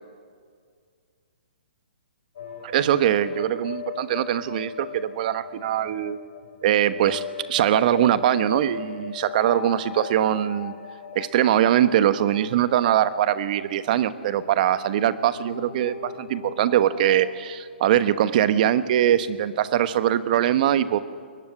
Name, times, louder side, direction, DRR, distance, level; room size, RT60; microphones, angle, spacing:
sound 1, 2.4-17.4, left 7 dB, 60° left, 4.9 m, -39 dB
voice 1, 2.6-6.2 6.6-10.7 11.1-21.0, right 11 dB, 45° right, 13 dB, 1.2 m, -22 dB
21.5 x 20.5 x 9.8 m, 2.1 s
hypercardioid pair, 130°, 6 cm